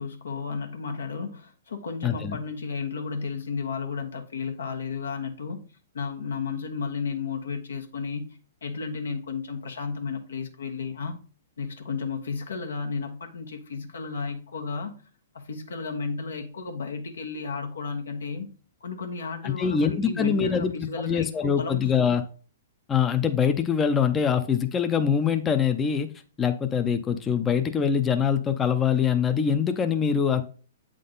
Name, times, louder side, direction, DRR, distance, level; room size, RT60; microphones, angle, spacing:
voice 1, 0.0-5.6 5.9-8.3 8.6-11.2 11.6-14.9 15.4-18.5 18.8-22.1, left 5 dB, 85° left, 1.2 m, -33 dB
voice 2, 2.0-2.4 19.4-20.7 21.1-22.2 22.9-26.1 26.4-30.4, left 7 dB, 15° left, 0.5 m, -24 dB
7.5 x 3.7 x 3.9 m
hypercardioid pair, 140°, 0 cm